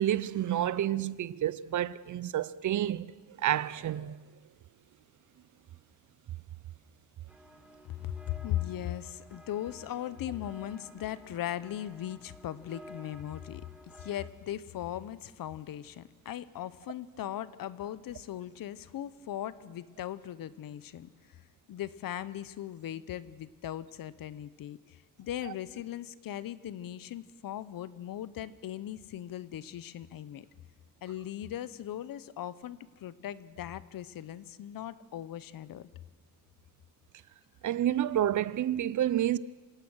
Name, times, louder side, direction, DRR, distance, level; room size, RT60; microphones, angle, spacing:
voice 1, 0.0-3.1 3.4-4.2 37.6-39.4, right 11 dB, 60° right, 0.6 m, -29 dB
sound 1, 7.3-14.3, equal, 5° right, 1.9 m, -53 dB
voice 2, 8.0-13.6 14.0-21.4 21.7-30.5 31.0-35.9, left 11 dB, 75° left, 0.9 m, -39 dB
25.5 x 17.5 x 6.3 m
cardioid pair, 125°, 34 cm